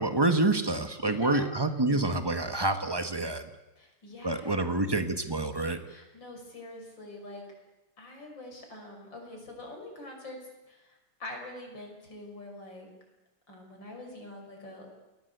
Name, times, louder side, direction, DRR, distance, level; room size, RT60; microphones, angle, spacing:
voice 1, 0.0-3.4 4.2-5.8, right 2 dB, 10° right, 8 dB, 1.5 m, -27 dB
voice 2, 1.0-1.5 3.8-4.8 5.9-7.4 8.0-10.4 10.7-12.9 13.5-14.9, left 2 dB, 55° left, 2 dB, 6.6 m, -45 dB
28.5 x 20.5 x 8.3 m, 1.1 s
omnidirectional pair, 2.4 m